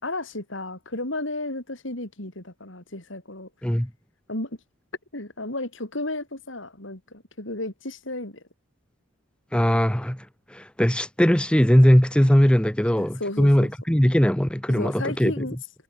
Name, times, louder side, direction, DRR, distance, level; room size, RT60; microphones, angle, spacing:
voice 1, 0.0-3.5 4.3-4.6 5.1-8.4 13.0-13.7 14.7-15.6, left 2 dB, 70° left, 4.6 m, -33 dB
voice 2, 9.5-15.5, equal, 5° left, 0.9 m, -20 dB
head